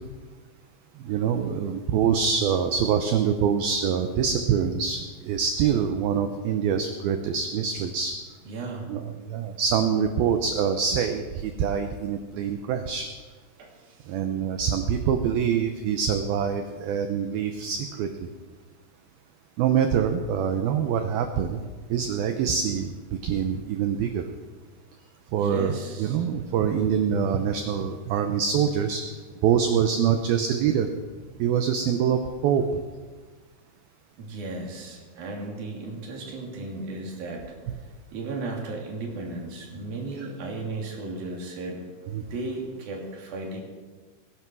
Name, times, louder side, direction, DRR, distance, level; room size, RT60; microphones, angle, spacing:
voice 1, 1.1-8.1 8.9-13.1 14.1-18.3 19.6-21.6 21.9-22.9 23.2-24.2 25.3-29.0 29.4-30.9 31.4-32.6 42.1-42.2, right 7 dB, 85° right, 7 dB, 2.1 m, -25 dB
voice 2, 8.4-8.9 13.6-14.2 25.4-26.2 31.3-31.4 34.2-37.4 38.1-41.8 42.1-43.6, right 2 dB, 55° right, -1 dB, 4.3 m, -35 dB
20.5 x 10.5 x 6.2 m, 1.4 s
omnidirectional pair, 5.5 m